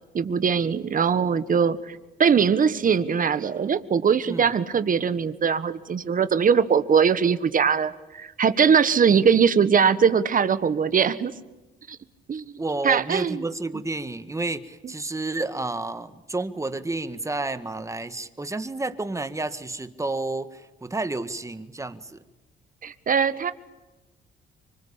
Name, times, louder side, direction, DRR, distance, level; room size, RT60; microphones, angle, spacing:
voice 1, 0.1-11.3 11.9-12.0 12.3-12.4 12.8-13.4 14.8-14.9 22.8-23.5, right 6 dB, 45° right, 13 dB, 1.5 m, -21 dB
voice 2, 12.6-22.2, right 2 dB, 15° right, 11 dB, 1.7 m, -30 dB
25.5 x 25.0 x 8.6 m, 1.1 s
cardioid pair, 90°, 20 cm